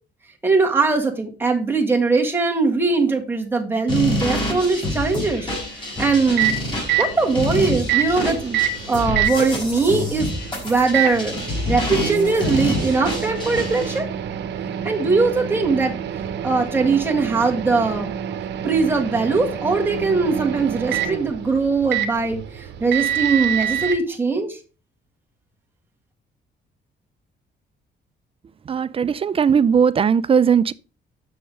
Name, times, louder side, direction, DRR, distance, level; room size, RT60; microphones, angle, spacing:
voice 1, 0.4-5.5 5.8-6.6 7.0-8.6 8.9-10.3 10.6-11.3 11.7-14.1 14.8-15.9 16.4-18.1 18.6-24.6, right 4 dB, 10° right, 1.8 m, -21 dB
sound 1, 3.9-14.0, left 1 dB, 25° left, 4.6 m, -27 dB
Microwave oven, 6.0-24.0, right 9 dB, 75° right, 0.9 m, -27 dB
voice 2, 28.7-30.7, right 7 dB, 30° right, 0.4 m, -18 dB
6.8 x 6.2 x 4.9 m
cardioid pair, 125°, 18 cm